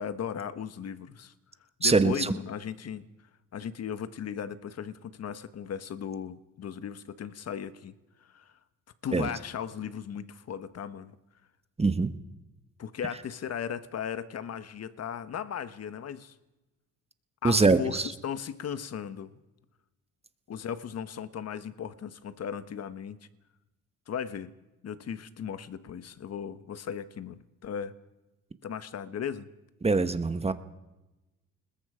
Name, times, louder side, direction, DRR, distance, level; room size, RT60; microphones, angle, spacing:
voice 1, 0.0-1.3 1.8-3.1 3.5-7.9 8.2-8.5 9.0-11.2 12.8-16.3 17.4-19.4 20.5-23.2 24.1-24.5 24.8-28.0 28.6-29.5, left 8 dB, 55° left, 13 dB, 1.4 m, -37 dB
voice 2, 1.8-2.3 9.1-9.3 11.8-12.1 17.4-18.1 29.8-30.5, right 3 dB, 20° right, 11 dB, 1.4 m, -23 dB
29.5 x 20.5 x 5.1 m, 1.0 s
cardioid pair, 90°, 30 cm